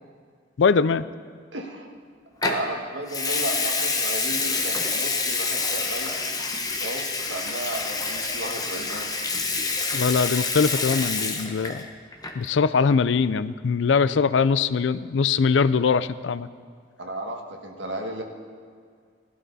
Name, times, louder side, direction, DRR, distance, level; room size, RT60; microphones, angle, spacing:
voice 1, 0.6-1.1 9.9-11.8 12.3-16.5, left 5 dB, 75° left, 15 dB, 0.4 m, -22 dB
voice 2, 1.5-1.9 2.4-6.3 6.8-9.1 17.0-18.2, right 1 dB, 75° right, 2 dB, 1.6 m, -34 dB
Water tap faucet / Sink (filling or washing) / Liquid, 2.4-2.6 3.1-11.9 12.1-12.5, left 4 dB, 20° left, 1.0 m, -27 dB
17.5 x 12.5 x 4.1 m, 2.1 s
head